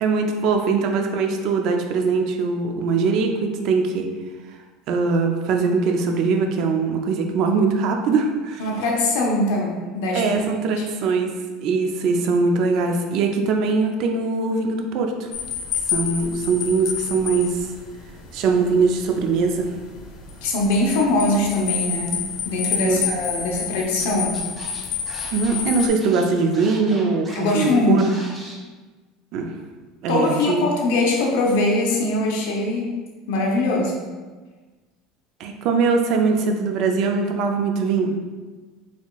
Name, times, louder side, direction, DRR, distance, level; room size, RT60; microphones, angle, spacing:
voice 1, 0.0-4.1 4.9-8.7 10.1-11.3 11.6-15.3 15.9-17.7 18.3-19.7 22.8-23.0 25.3-28.1 29.3-29.5 30.0-30.7 35.4-38.1, right 4 dB, 50° right, 4 dB, 0.4 m, -21 dB
voice 2, 8.6-10.2 10.8-10.9 20.4-24.4 27.3-28.1 30.1-33.0 33.3-33.9, left 2 dB, 85° left, -1 dB, 0.8 m, -22 dB
sound 1, 15.3-25.9, left 7 dB, 50° left, 0.5 m, -29 dB
Scratching (performance technique), 24.0-24.1 24.3-27.7 28.0-28.5, right 1 dB, 15° right, 0.8 m, -40 dB
4.2 x 3.0 x 2.3 m, 1.3 s
cardioid pair, 155°, 0 cm